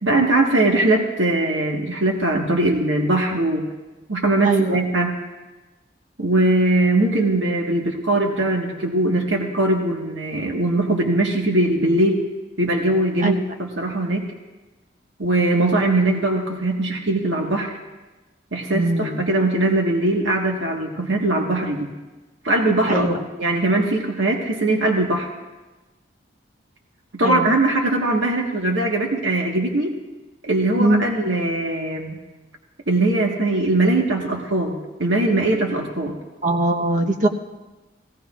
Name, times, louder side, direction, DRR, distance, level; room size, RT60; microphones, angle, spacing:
voice 1, 0.0-3.7 4.1-5.2 6.2-12.2 12.6-14.3 15.2-17.7 18.5-21.9 22.4-23.1 23.4-25.3 27.1-29.9 30.4-32.2 32.9-36.2, right 2 dB, 90° right, 0 dB, 1.5 m, -21 dB
voice 2, 4.4-4.8 13.2-13.3 18.7-19.2 22.9-23.2 27.2-27.5 30.8-31.0 36.4-37.3, right 2 dB, 40° right, 3 dB, 1.0 m, -20 dB
17.0 x 17.0 x 2.5 m, 1.2 s
head